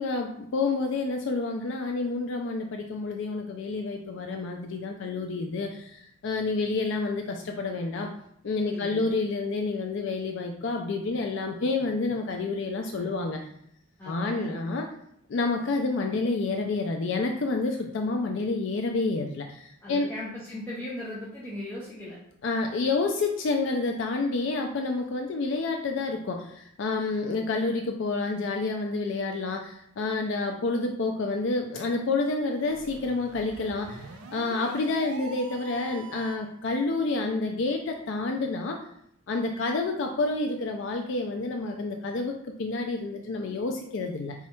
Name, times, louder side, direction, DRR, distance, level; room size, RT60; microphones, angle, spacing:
voice 1, 0.0-8.1 8.4-13.4 14.1-14.9 15.3-20.1 22.4-38.8 39.3-44.3, left 3 dB, 55° left, 3 dB, 0.3 m, -29 dB
voice 2, 8.6-9.1 12.9-13.2 14.0-14.5 19.8-22.2, left 1 dB, 10° left, -7 dB, 0.6 m, -38 dB
sound 1, 32.6-36.6, right 3 dB, 90° right, 0.5 m, -44 dB
4.2 x 2.3 x 4.3 m, 0.71 s
head